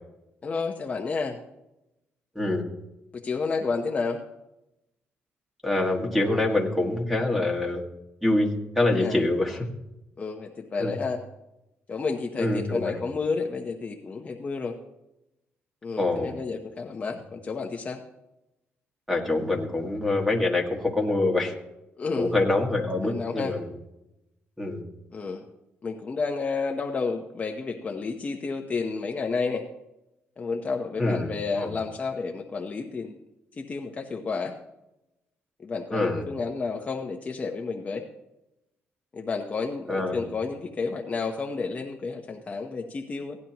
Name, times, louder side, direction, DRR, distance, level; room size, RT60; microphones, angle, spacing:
voice 1, 0.4-1.4 3.1-4.2 9.0-9.2 10.2-11.2 11.9-14.8 15.8-18.0 22.0-22.3 23.0-23.6 25.1-25.5 25.8-29.7 30.4-33.2 33.5-34.5 35.6-38.1 39.1-43.4, left 4 dB, 30° left, 2 dB, 0.9 m, -31 dB
voice 2, 5.6-7.8 8.2-9.6 10.8-10.9 12.4-13.0 16.0-16.4 19.1-21.5 22.2-23.7 24.6-24.8 31.0-31.7 35.9-36.2 39.9-40.3, left 2 dB, ahead, 1 dB, 1.8 m, -25 dB
17.0 x 10.5 x 3.0 m, 0.91 s
cardioid pair, 130°, 5 cm